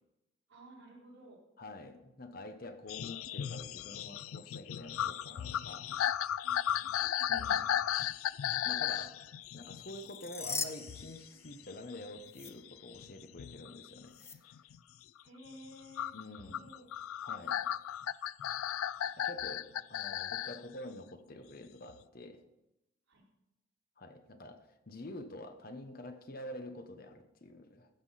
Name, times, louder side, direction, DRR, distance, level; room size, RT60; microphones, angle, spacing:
voice 1, 0.5-1.4 6.4-7.0 15.2-16.8 23.1-23.2, equal, 70° right, -3 dB, 3.7 m, -54 dB
voice 2, 1.6-6.1 7.3-7.7 8.6-9.2 9.5-14.5 16.1-16.7 17.2-17.6 19.2-22.4 24.0-27.9, left 1 dB, 45° left, 7 dB, 0.9 m, -47 dB
sound 1, 2.9-11.2 11.5-13.9 14.3-14.8 16.0-20.6 21.9-22.0, left 10 dB, 85° left, 0.3 m, -35 dB
sound 2, 9.9-11.9 12.3-12.5 14.1-14.4, left 4 dB, 10° left, 0.4 m, -41 dB
15.5 x 6.0 x 5.6 m, 0.91 s
head